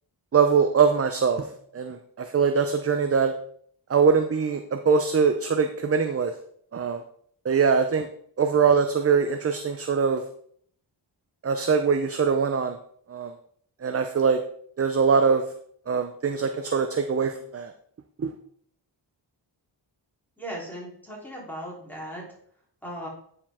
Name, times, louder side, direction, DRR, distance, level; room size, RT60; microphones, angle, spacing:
voice 1, 0.3-1.5 1.7-3.3 3.9-6.3 6.7-7.0 7.4-8.1 8.4-10.2 11.4-12.8 13.1-13.3 13.8-14.4 14.8-15.4 15.9-17.7 18.2-18.3, right 5 dB, 35° right, 7 dB, 0.5 m, -22 dB
voice 2, 20.4-22.2 22.8-23.1, equal, 5° left, -4 dB, 3.4 m, -37 dB
9.5 x 5.0 x 3.6 m, 0.64 s
wide cardioid pair, 85°, 45 cm